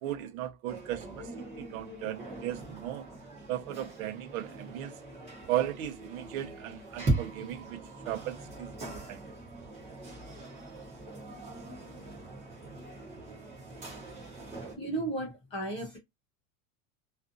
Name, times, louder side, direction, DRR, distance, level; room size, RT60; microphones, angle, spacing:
voice 1, 0.0-3.1 3.5-4.9 5.5-9.2, right 13 dB, 80° right, 0.7 m, -36 dB
sound 1, 0.6-14.7, right 2 dB, 15° right, 0.9 m, -40 dB
voice 2, 14.6-16.0, right 2 dB, 15° left, 0.4 m, -35 dB
2.5 x 2.5 x 2.5 m
supercardioid pair, 180°, 41 cm